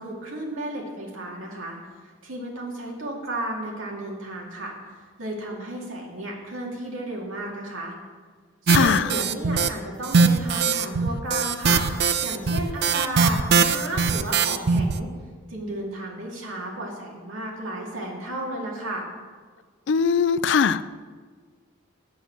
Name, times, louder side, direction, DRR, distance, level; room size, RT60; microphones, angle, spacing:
voice 1, 0.0-1.8 2.2-4.8 5.2-7.9 8.6-11.8 12.2-15.1 15.5-19.1, right 1 dB, 85° right, 2.3 m, -33 dB
voice 2, 8.7-9.0 19.9-20.9, left 6 dB, 60° left, 0.4 m, -20 dB
sound 1, 8.7-9.7 10.0-15.0, right 5 dB, 55° right, 0.4 m, -21 dB
8.4 x 8.2 x 5.9 m
head